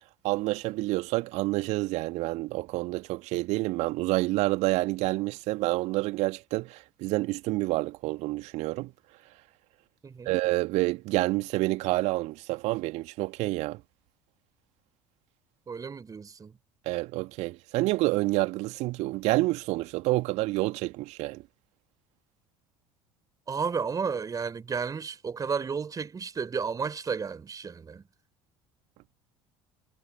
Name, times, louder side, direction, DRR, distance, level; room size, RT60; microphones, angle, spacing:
voice 1, 0.2-8.9 10.3-13.8 16.9-21.4, right 20 dB, 55° right, 2.5 m, -28 dB
voice 2, 10.0-10.3 15.7-16.5 23.5-28.0, right 5 dB, 25° right, 3.9 m, -32 dB
figure-of-eight pair, 60°, 14 cm